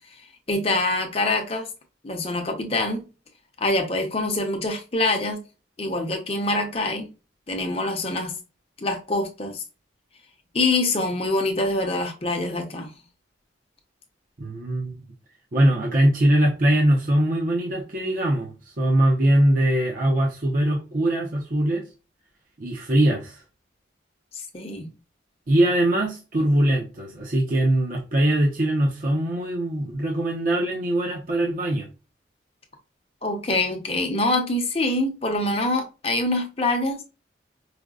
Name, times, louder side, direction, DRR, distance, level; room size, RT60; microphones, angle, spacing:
voice 1, 0.5-1.7 2.0-3.0 3.6-5.4 5.8-7.1 7.5-8.3 8.8-9.6 10.5-12.9 24.3-24.9 33.2-37.0, left 2 dB, 30° left, 0.7 m, -25 dB
voice 2, 14.4-15.0 15.5-21.8 22.6-23.4 25.5-31.9, right 1 dB, 45° right, 0.7 m, -22 dB
4.9 x 2.1 x 2.4 m
head